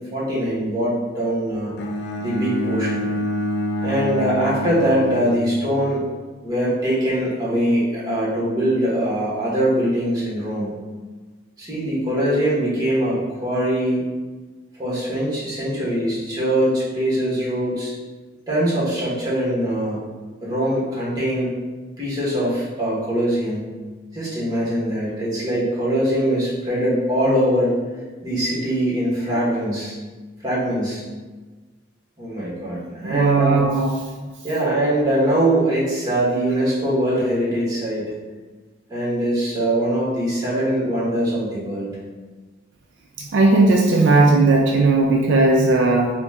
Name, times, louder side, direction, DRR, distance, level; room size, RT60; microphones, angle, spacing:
voice 1, 0.1-1.8 2.2-3.1 3.8-6.0 6.4-10.7 11.6-14.0 14.8-17.9 18.5-20.1 20.4-21.5 22.0-23.7 24.1-27.7 28.2-30.0 30.4-31.0 32.2-33.6 34.4-38.1 38.9-41.9, right 1 dB, 20° right, -7 dB, 1.1 m, -22 dB
Bowed string instrument, 1.8-6.0, equal, 60° left, 0.4 m, -27 dB
voice 2, 33.0-33.9 43.3-46.1, right 3 dB, 70° right, 1 dB, 0.4 m, -16 dB
3.9 x 2.2 x 3.5 m, 1.3 s
head